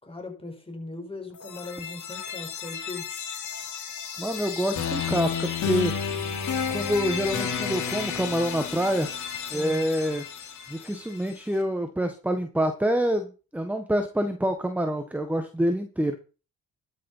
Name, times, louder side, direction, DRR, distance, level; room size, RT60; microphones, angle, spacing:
voice 1, 0.0-3.1 9.5-9.8, left 2 dB, 20° left, 4.8 m, -39 dB
sound 1, 1.3-11.3, left 7 dB, 70° left, 3.6 m, -32 dB
voice 2, 4.2-5.9 6.7-9.1 9.5-10.2 10.7-16.2, equal, 5° right, 1.6 m, -26 dB
12.5 x 6.8 x 5.7 m
cardioid pair, 90°, 30 cm